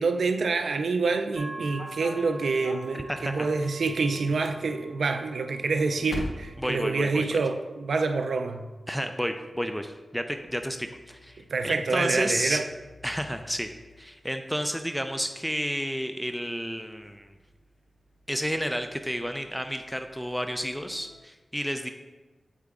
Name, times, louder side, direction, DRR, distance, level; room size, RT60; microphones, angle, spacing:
voice 1, 0.0-8.6 11.5-12.7, right 4 dB, 90° right, 7 dB, 0.4 m, -27 dB
sound 1, 1.4-7.6 7.9-8.5 9.5-21.2, left 2 dB, 65° left, 0.8 m, -47 dB
sound 2, 1.4-15.0, right 2 dB, 40° right, 2.0 m, -48 dB
voice 2, 3.1-3.5 6.6-7.4 8.9-12.6 13.0-13.7 14.0-17.3 18.3-21.9, equal, ahead, 6 dB, 0.4 m, -31 dB
7.7 x 4.9 x 3.6 m, 1.2 s
wide cardioid pair, 65°, 0 cm